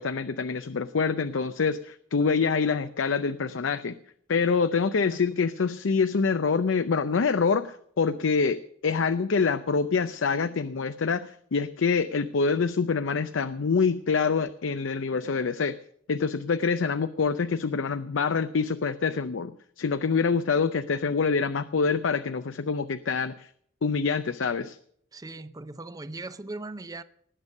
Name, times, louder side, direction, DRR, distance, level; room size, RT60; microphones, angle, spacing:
voice 1, 0.0-3.9 4.3-15.8 16.1-19.5 19.8-23.5 23.8-24.8, left 5 dB, 85° left, 12 dB, 0.5 m, -26 dB
voice 2, 25.1-27.0, right 2 dB, 20° right, 14 dB, 0.5 m, -39 dB
19.0 x 8.1 x 6.5 m, 0.64 s
head